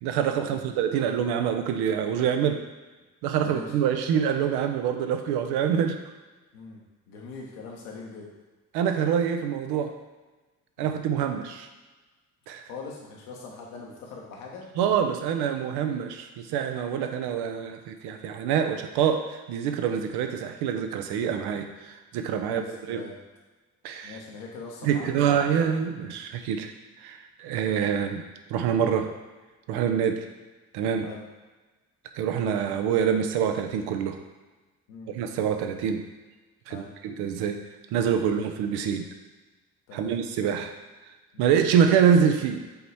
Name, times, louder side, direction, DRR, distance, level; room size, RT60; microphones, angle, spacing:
voice 1, 0.0-2.6 3.2-6.0 8.7-9.9 10.8-11.7 12.5-12.6 14.8-23.0 23.8-24.2 24.8-26.7 27.0-28.2 28.5-29.1 29.7-30.2 30.7-31.1 32.2-34.2 35.1-36.0 36.7-37.6 37.9-39.0 39.9-40.7 41.4-42.6, right 8 dB, 55° right, 6 dB, 0.8 m, -25 dB
voice 2, 3.4-3.7 6.5-6.8 7.1-8.3 10.8-11.0 12.6-14.6 22.4-23.2 24.0-25.7 29.9-30.1 31.0-31.2 34.9-35.1 36.7-36.9 38.2-38.4 39.9-40.2 41.3-41.5, left 4 dB, 70° left, -2 dB, 1.5 m, -42 dB
7.7 x 4.2 x 4.3 m, 1.2 s
figure-of-eight pair, 45°, 46 cm